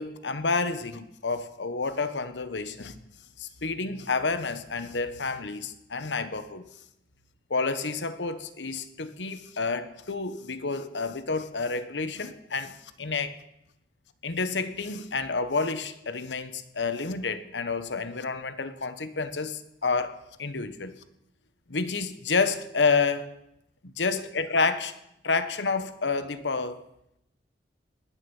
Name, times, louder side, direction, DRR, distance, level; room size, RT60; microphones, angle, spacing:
voice 1, 0.0-3.0 3.4-6.6 7.5-13.3 14.2-21.0 21.7-23.4 23.8-24.9 25.2-26.8, left 4 dB, 90° left, 1.2 m, -29 dB
20.0 x 7.3 x 7.2 m
head